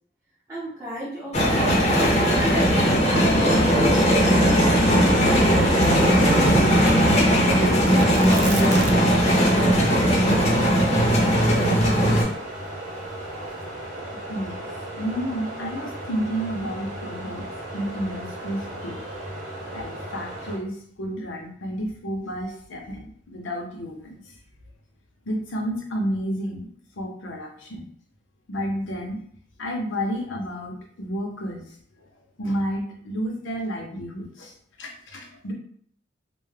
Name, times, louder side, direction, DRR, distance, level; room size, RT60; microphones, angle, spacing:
voice 1, 0.5-2.7 3.7-6.7 7.4-8.2, equal, 15° right, -10 dB, 0.7 m, -35 dB
sound 1, 1.3-12.2, equal, 35° left, 0.6 m, -18 dB
sound 2, 3.4-20.6, right 1 dB, 45° right, 0.8 m, -36 dB
Tearing, 7.9-9.3 9.5-9.6 10.2-12.6 13.3-13.7, right 3 dB, 60° right, 0.4 m, -33 dB
voice 2, 14.1-14.7 14.9-17.5 17.7-19.1 19.7-24.3 25.3-26.7 27.0-27.9 28.5-29.2 29.6-31.7 32.4-35.5, equal, 75° left, 1 dB, 0.6 m, -31 dB
2.2 x 2.0 x 3.2 m, 0.62 s
head